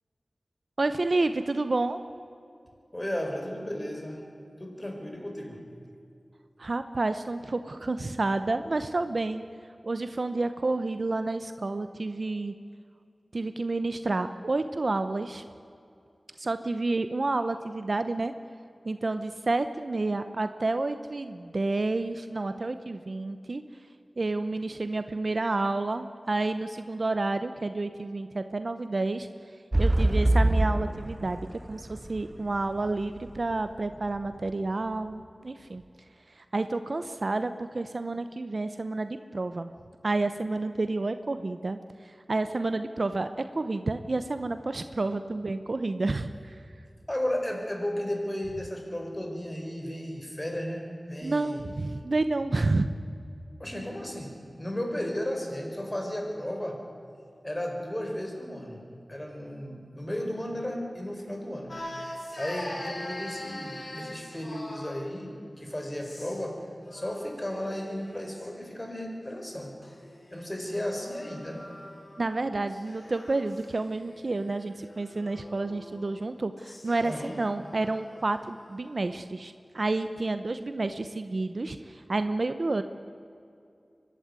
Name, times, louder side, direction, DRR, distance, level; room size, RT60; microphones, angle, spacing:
voice 1, 0.8-2.0 6.6-9.4 9.8-12.5 13.3-15.4 16.4-18.3 18.8-23.6 24.2-29.3 29.8-35.8 36.3-39.7 40.0-46.5 51.2-52.9 72.2-82.8, right 2 dB, 60° right, 10 dB, 0.8 m, -30 dB
voice 2, 2.9-4.2 4.6-5.6 29.9-30.3 47.1-51.6 53.6-54.3 54.6-56.8 57.4-58.8 59.1-61.7 62.0-69.7 70.3-71.7 77.0-77.4, left 1 dB, 20° left, 2 dB, 4.7 m, -34 dB
sound 1, 29.7-33.6 34.1-34.2, right 1 dB, 30° right, 0.6 m, -24 dB
sound 2, 61.7-65.1 65.9-66.5 66.8-68.5 69.5-72.3 72.7-78.3, left 1 dB, 50° left, 3.8 m, -43 dB
24.0 x 12.0 x 9.6 m, 2.5 s
wide cardioid pair, 50°, 0 cm